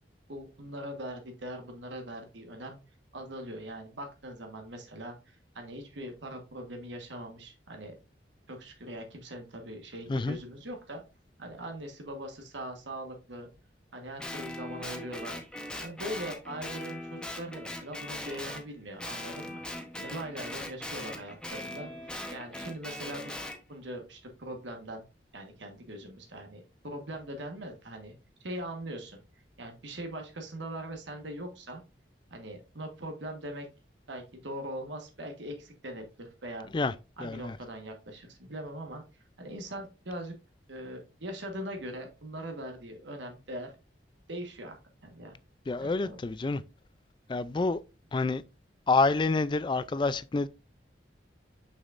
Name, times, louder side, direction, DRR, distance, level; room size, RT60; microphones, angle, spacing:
voice 1, 0.3-2.8 3.1-7.9 8.5-11.0 11.4-13.5 13.9-15.4 15.8-21.9 22.3-23.4 23.7-25.0 25.3-28.1 28.4-29.2 29.6-31.8 32.3-33.7 34.1-36.7 37.2-40.3 40.7-43.7 44.3-44.8 45.0-45.4 45.8-46.2, right 1 dB, 80° right, 1.3 m, -41 dB
Guitar, 14.2-18.7 19.0-23.6, left 1 dB, 5° left, 0.9 m, -40 dB
voice 2, 37.2-37.6 45.7-46.6 47.3-47.8 48.1-48.4 48.9-50.5, left 3 dB, 25° left, 0.3 m, -27 dB
6.2 x 6.2 x 2.5 m
head